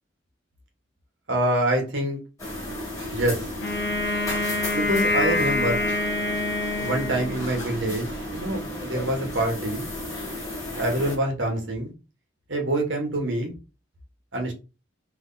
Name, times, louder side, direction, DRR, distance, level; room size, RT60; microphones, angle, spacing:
voice 1, 1.3-2.2 3.1-3.4 4.7-5.9 6.8-9.9 10.8-11.9 12.5-13.5 14.3-14.6, right 1 dB, 80° right, 2 dB, 1.6 m, -26 dB
sound 1, 2.4-11.2, left 1 dB, 20° left, 1.7 m, -34 dB
Wind instrument woodwind instrument, 3.6-7.8, left 2 dB, 60° left, 0.8 m, -26 dB
3.5 x 3.2 x 4.0 m, 0.29 s
head